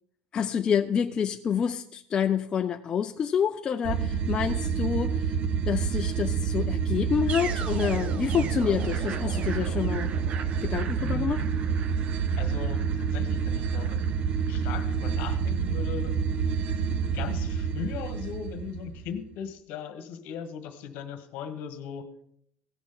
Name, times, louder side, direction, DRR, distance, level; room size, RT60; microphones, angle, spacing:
voice 1, 0.3-5.3 5.7-10.1 10.6-11.4, left 7 dB, 25° left, 5 dB, 0.4 m, -28 dB
sound 1, 3.8-19.2, right 6 dB, 35° right, 0.6 m, -28 dB
voice 2, 11.0-11.5 12.4-14.0 14.5-16.1 17.1-22.0, left 8 dB, 55° left, 8 dB, 1.4 m, -38 dB
17.0 x 6.2 x 3.9 m, 0.70 s
cardioid pair, 155°, 4 cm